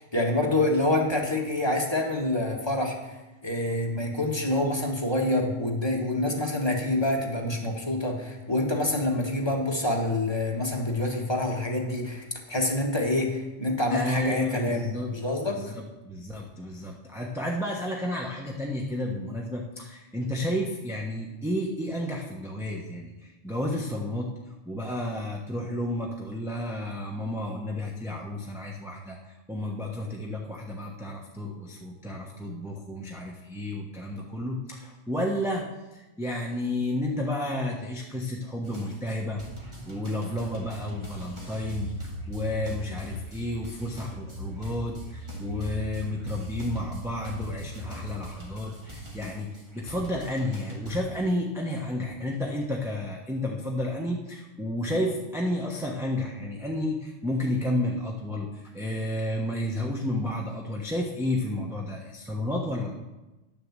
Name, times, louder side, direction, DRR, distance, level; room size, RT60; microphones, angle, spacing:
voice 1, 0.1-3.2 3.4-15.6, left 1 dB, 20° left, -1 dB, 1.7 m, -27 dB
voice 2, 13.9-15.1 15.5-24.3 24.7-35.6 35.9-39.4 39.9-62.9, left 1 dB, ahead, -1 dB, 1.0 m, -31 dB
sound 1, 38.6-51.0, right 1 dB, 25° right, 2.3 m, -43 dB
sound 2, 41.6-48.2, left 1 dB, 60° right, 3.5 m, -38 dB
10.5 x 6.7 x 7.5 m, 1.1 s
omnidirectional pair, 1.3 m